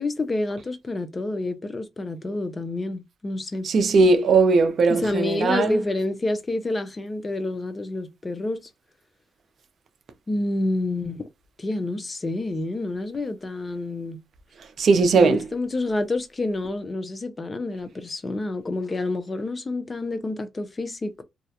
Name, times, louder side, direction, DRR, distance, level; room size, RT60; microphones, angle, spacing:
voice 1, 0.0-3.7 4.9-8.7 10.3-11.3 11.6-14.2 15.1-21.2, left 2 dB, 25° left, 0.4 m, -28 dB
voice 2, 3.6-5.8 14.8-15.4, right 4 dB, 50° right, 0.4 m, -18 dB
2.3 x 2.1 x 2.7 m
cardioid pair, 130°, 0 cm